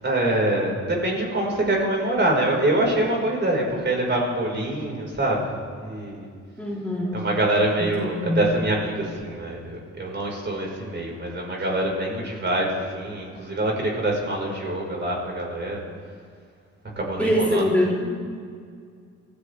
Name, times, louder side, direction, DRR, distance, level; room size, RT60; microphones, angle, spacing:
voice 1, 0.0-5.5 5.8-6.3 7.1-15.8 17.0-17.7, right 1 dB, 35° right, -1 dB, 4.9 m, -25 dB
voice 2, 6.6-7.2 7.8-8.4 17.2-18.1, equal, 5° left, -5 dB, 3.6 m, -24 dB
25.0 x 15.0 x 3.5 m, 2.2 s
cardioid pair, 90°, 30 cm